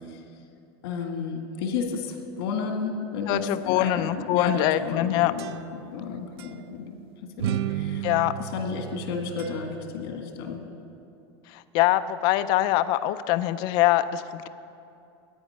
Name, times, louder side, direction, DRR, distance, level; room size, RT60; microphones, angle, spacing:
voice 1, 0.8-7.0 7.4-8.0 8.4-10.6, left 5 dB, 60° left, 4 dB, 2.0 m, -32 dB
voice 2, 3.3-5.3 8.0-8.4 11.7-14.5, left 14 dB, 35° left, 13 dB, 0.3 m, -23 dB
sound 1, 4.9-6.0 6.4-6.6 7.4-9.9, right 11 dB, 70° right, 0.6 m, -33 dB
10.5 x 9.4 x 9.7 m, 2.6 s
supercardioid pair, 175°, 14 cm